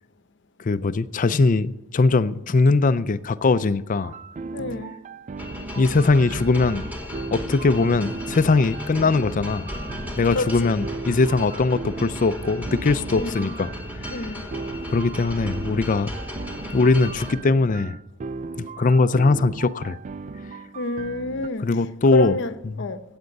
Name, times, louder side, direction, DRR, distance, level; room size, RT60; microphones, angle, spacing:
voice 1, 0.6-4.1 5.8-6.9 7.3-9.7 10.2-13.7 14.0-14.2 14.9-16.1 16.7-18.0 18.6-20.0 21.6-22.4 22.8-22.9, left 3 dB, 40° left, 0.4 m, -21 dB
sound 1, 4.0-21.5, right 4 dB, 35° right, 0.3 m, -37 dB
voice 2, 4.5-5.0 10.3-10.8 13.1-13.5 14.1-14.5 20.7-21.7 22.1-23.0, left 2 dB, 60° left, 0.8 m, -28 dB
sound 2, 5.4-17.4, left 1 dB, 10° right, 2.6 m, -35 dB
16.0 x 8.9 x 5.3 m
head